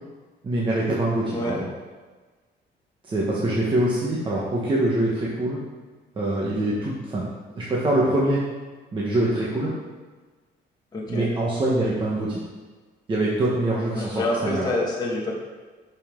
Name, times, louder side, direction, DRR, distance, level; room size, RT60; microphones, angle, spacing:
voice 1, 0.4-1.5 3.1-5.6 6.2-7.3 7.6-8.4 8.9-9.7 11.1-12.4 13.1-14.6, right 1 dB, 25° right, -5 dB, 1.2 m, -24 dB
voice 2, 10.9-11.3 13.9-15.3, left 1 dB, 20° left, -4 dB, 1.5 m, -27 dB
11.0 x 5.5 x 3.7 m, 1.3 s
cardioid pair, 170°, 19 cm